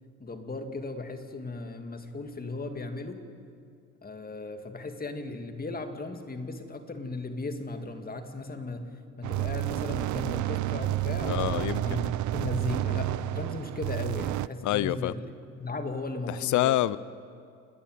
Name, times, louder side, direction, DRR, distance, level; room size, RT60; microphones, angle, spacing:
voice 1, 0.2-3.2 4.0-15.2 15.6-16.8, left 3 dB, 30° left, 6 dB, 2.1 m, -36 dB
sound 1, 9.2-14.5, right 15 dB, 75° right, 0.6 m, -30 dB
voice 2, 11.3-12.2 14.6-15.1 16.3-17.0, left 14 dB, 75° left, 18 dB, 0.5 m, -27 dB
29.0 x 10.5 x 9.2 m, 2.4 s
cardioid pair, 90°, 30 cm